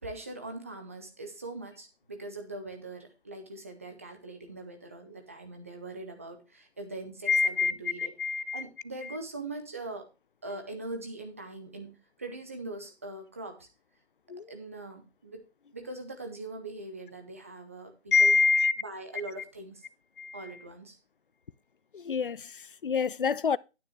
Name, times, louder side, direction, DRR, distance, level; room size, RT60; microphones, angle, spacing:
voice 1, 0.0-8.1 8.5-10.1 10.4-13.7 14.5-15.4 15.7-18.4 18.8-19.8 20.3-21.0, right 2 dB, 10° right, 0.7 m, -41 dB
voice 2, 7.3-7.7 8.0-8.6 9.0-9.2 14.3-14.5 18.1-18.7 20.2-20.6 21.9-23.6, left 4 dB, 50° left, 0.5 m, -26 dB
10.0 x 9.3 x 3.1 m
figure-of-eight pair, 160°, 35 cm